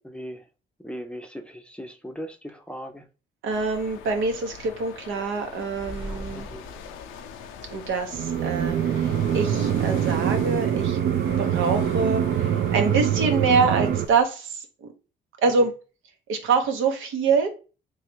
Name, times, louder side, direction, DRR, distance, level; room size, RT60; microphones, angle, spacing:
voice 1, 0.0-0.4 0.8-3.0 6.3-6.6, equal, 5° left, 0.5 m, -38 dB
voice 2, 3.4-6.5 7.7-11.0 11.4-14.9 15.4-15.7 16.3-17.5, right 4 dB, 80° right, 0.8 m, -25 dB
sound 1, 3.5-14.2, left 7 dB, 85° left, 0.5 m, -41 dB
sound 2, 5.6-8.5, equal, 25° right, 1.1 m, -41 dB
sound 3, 8.1-14.0, right 10 dB, 60° right, 0.4 m, -24 dB
3.1 x 2.3 x 4.3 m
cardioid pair, 90°, 20 cm